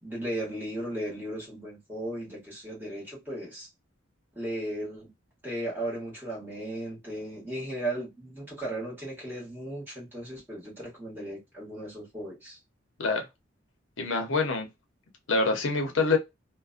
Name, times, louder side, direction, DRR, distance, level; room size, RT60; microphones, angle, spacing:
voice 1, 0.0-3.7 4.3-5.1 5.4-12.6, right 1 dB, 10° right, 1.2 m, -36 dB
voice 2, 14.0-14.7 15.3-16.2, left 3 dB, 80° left, 0.7 m, -25 dB
2.4 x 2.1 x 2.4 m
head